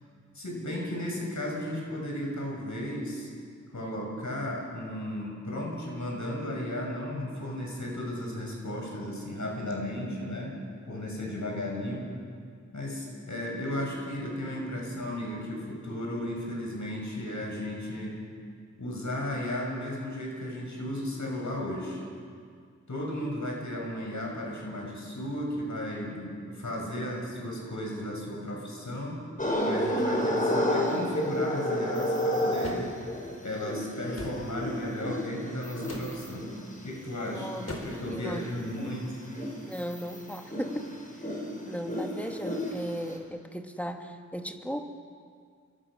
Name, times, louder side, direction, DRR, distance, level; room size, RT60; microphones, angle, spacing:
voice 1, 0.3-3.3 3.7-10.5 10.9-12.1 12.7-18.2 18.8-22.0 22.9-29.2 29.6-32.9 33.4-36.5 36.8-39.2, left 1 dB, 75° left, -1 dB, 6.7 m, -34 dB
sound 1, 29.4-37.6 38.1-43.2, equal, 25° left, 5.2 m, -31 dB
sound 2, 32.6-32.9 34.1-34.4 35.8-36.2 37.7-38.1, left 1 dB, 55° left, 4.4 m, -39 dB
voice 2, 37.3-37.7 38.1-38.5 39.6-40.9 41.6-44.9, equal, 5° left, 4 dB, 2.2 m, -36 dB
28.5 x 24.5 x 6.4 m, 2.1 s
wide cardioid pair, 60°, 30 cm